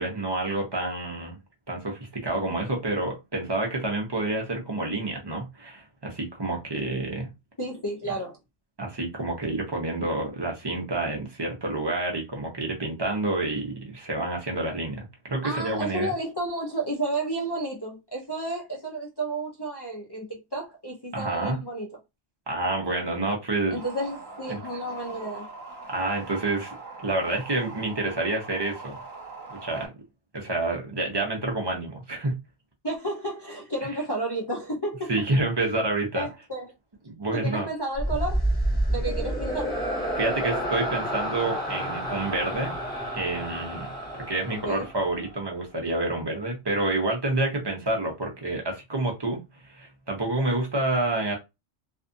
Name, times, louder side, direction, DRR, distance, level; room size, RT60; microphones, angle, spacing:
voice 1, 0.0-1.4 1.7-7.3 8.8-16.1 21.1-21.6 22.5-23.8 24.5-24.6 25.9-26.7 27.0-29.0 29.5-29.9 30.3-32.4 35.1-36.3 37.1-37.7 40.2-42.8 43.1-43.9 44.2-51.4, right 2 dB, 25° right, 0.6 m, -28 dB
voice 2, 7.6-8.4 15.4-22.0 23.7-25.5 32.8-35.3 36.1-36.7 37.3-38.5 38.9-39.7 44.5-44.9, right 2 dB, 35° left, 0.4 m, -32 dB
sound 1, 23.7-29.9, right 3 dB, 40° right, 1.3 m, -42 dB
sound 2, 38.0-45.3, right 1 dB, 10° left, 0.8 m, -29 dB
2.6 x 2.4 x 2.5 m
omnidirectional pair, 1.2 m